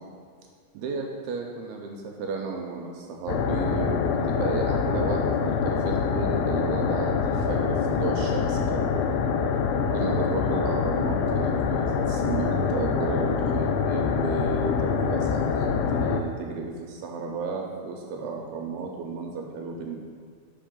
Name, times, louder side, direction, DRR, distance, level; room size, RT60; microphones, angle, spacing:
voice 1, 0.7-8.9 9.9-20.0, right 3 dB, 80° right, 1 dB, 2.4 m, -33 dB
sound 1, 3.3-16.2, left 6 dB, 85° left, 2.6 m, -25 dB
5.9 x 5.4 x 5.2 m, 2.1 s
omnidirectional pair, 4.7 m